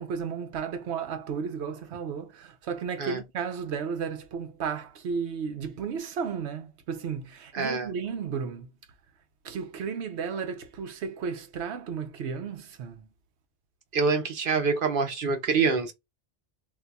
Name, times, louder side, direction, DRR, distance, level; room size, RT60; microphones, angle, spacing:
voice 1, 0.0-8.7 9.4-13.1, right 6 dB, 85° right, 1.0 m, -33 dB
voice 2, 7.5-7.9 13.9-15.9, right 4 dB, 55° right, 0.9 m, -25 dB
2.7 x 2.3 x 3.8 m
omnidirectional pair, 1.1 m